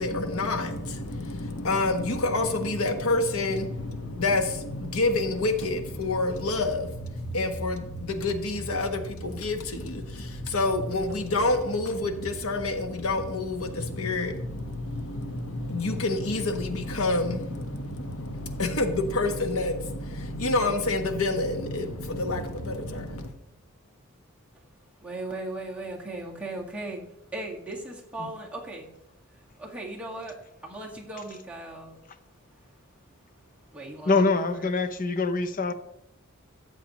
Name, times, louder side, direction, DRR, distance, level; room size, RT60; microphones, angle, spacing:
voice 1, 0.0-23.3, left 2 dB, 90° left, 1.3 m, -28 dB
voice 2, 25.0-27.0 27.3-28.9 29.3-30.4 30.6-32.0 33.7-34.7, right 2 dB, 5° right, 1.8 m, -37 dB
voice 3, 34.1-35.7, left 3 dB, 40° left, 0.7 m, -24 dB
13.5 x 7.9 x 3.1 m
head